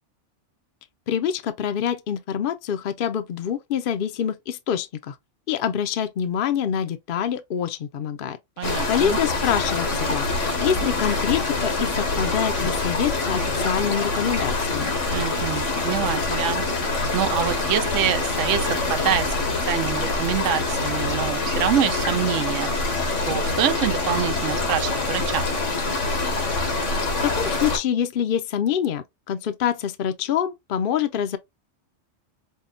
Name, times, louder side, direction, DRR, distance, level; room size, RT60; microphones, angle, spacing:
voice 1, 1.1-5.2 5.5-14.9 27.0-31.4, left 9 dB, 55° left, 0.7 m, -26 dB
sound 1, 8.6-27.8, left 3 dB, 85° left, 1.6 m, -25 dB
voice 2, 8.6-9.2 15.1-16.7 17.1-23.0 23.3-25.5, right 10 dB, 85° right, 1.0 m, -26 dB
5.5 x 2.2 x 2.4 m
omnidirectional pair, 1.2 m